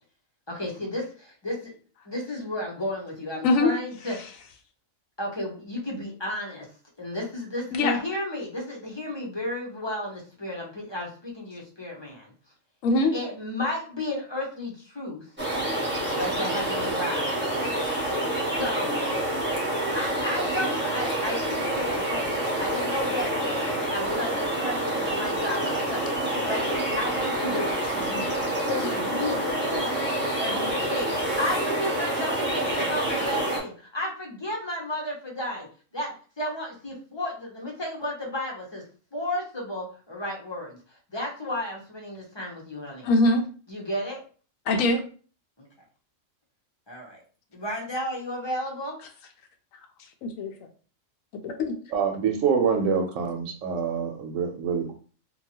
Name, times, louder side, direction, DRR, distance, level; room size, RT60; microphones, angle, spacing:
voice 1, 0.5-1.7 2.0-4.2 5.2-6.7 7.0-12.3 13.1-15.3 16.2-17.3 18.6-18.9 19.9-26.1 26.5-26.6 27.0-30.0 30.4-35.7 35.9-38.8 39.1-43.1 43.7-44.2 45.6-45.7 46.9-47.2 47.5-49.0, left 1 dB, 25° left, -2 dB, 0.6 m, -33 dB
voice 2, 12.8-13.1 43.0-43.4 44.7-45.0 50.2-50.5 51.4-51.7, left 2 dB, 85° left, 5 dB, 1.0 m, -22 dB
sound 1, 15.4-33.6, right 1 dB, 10° right, 1.0 m, -27 dB
voice 3, 51.9-54.9, right 6 dB, 80° right, 4 dB, 1.0 m, -26 dB
2.8 x 2.3 x 2.8 m, 0.40 s
omnidirectional pair, 1.4 m